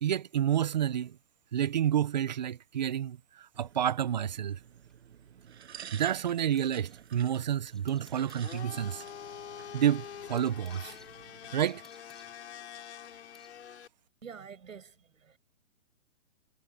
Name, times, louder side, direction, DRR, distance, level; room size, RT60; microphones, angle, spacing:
voice 1, 0.0-1.2 1.5-4.6 5.9-9.0 9.7-11.0 11.5-11.8, right 10 dB, 35° right, 0.7 m, -29 dB
sound 1, 3.5-11.5, right 9 dB, 55° right, 7.0 m, -52 dB
sound 2, 3.8-7.1 7.4-9.1 9.4-9.5 9.9-13.6, left 1 dB, ahead, 6.8 m, -62 dB
Domestic sounds home sounds, 8.3-13.9, left 9 dB, 55° left, 5.0 m, -46 dB
voice 2, 14.2-15.4, right 6 dB, 80° right, 7.9 m, -47 dB
hypercardioid pair, 165°, 39 cm